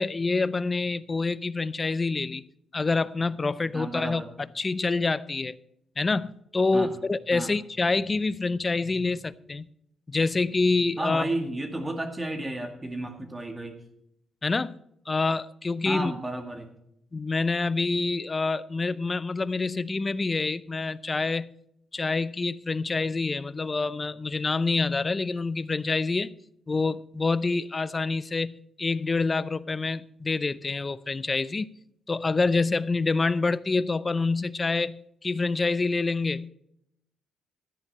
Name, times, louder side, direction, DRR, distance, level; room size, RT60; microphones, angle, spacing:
voice 1, 0.0-2.4 2.7-4.2 4.6-5.6 6.0-9.6 10.1-11.2 14.4-14.7 15.1-16.1 17.1-21.5 21.9-26.3 26.7-31.7 32.1-36.5, left 3 dB, 30° left, 0.6 m, -27 dB
voice 2, 3.7-4.3 6.7-6.9 7.3-7.5 11.0-13.8 15.8-16.7, right 1 dB, 20° right, 2.1 m, -32 dB
13.0 x 10.0 x 4.2 m
supercardioid pair, 60°, 0 cm